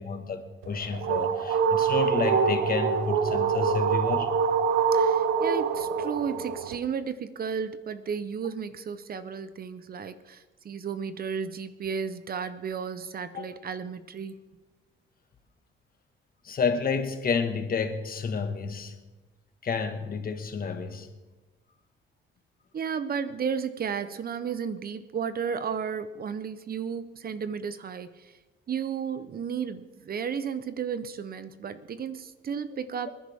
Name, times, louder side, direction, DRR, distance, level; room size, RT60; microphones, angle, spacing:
voice 1, 0.0-4.3 13.3-13.5 16.4-18.9 19.6-21.1, left 5 dB, 45° left, 6 dB, 1.8 m, -30 dB
sound 1, 0.6-6.8, right 6 dB, 80° right, 1.1 m, -25 dB
voice 2, 4.9-14.4 22.7-28.3 28.7-33.1, right 6 dB, 50° right, 13 dB, 1.0 m, -33 dB
25.5 x 10.5 x 3.7 m, 1.2 s
cardioid pair, 90°, 20 cm